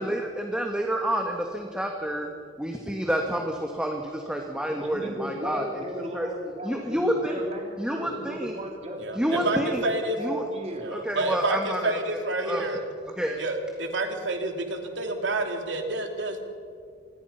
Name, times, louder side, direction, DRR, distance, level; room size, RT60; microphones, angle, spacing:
voice 1, 0.0-2.3 2.6-5.8 6.1-6.3 6.6-7.4 7.8-8.6 9.2-9.8 10.2-10.5 10.9-11.9 12.4-12.6 13.2-13.4, equal, 5° right, 2 dB, 1.7 m, -29 dB
voice 2, 4.7-9.5 9.8-11.0, equal, 35° right, 1 dB, 3.9 m, -36 dB
voice 3, 9.0-10.2 10.7-12.8 13.4-16.4, right 2 dB, 85° right, 4 dB, 3.0 m, -29 dB
26.5 x 21.0 x 5.8 m, 2.2 s
head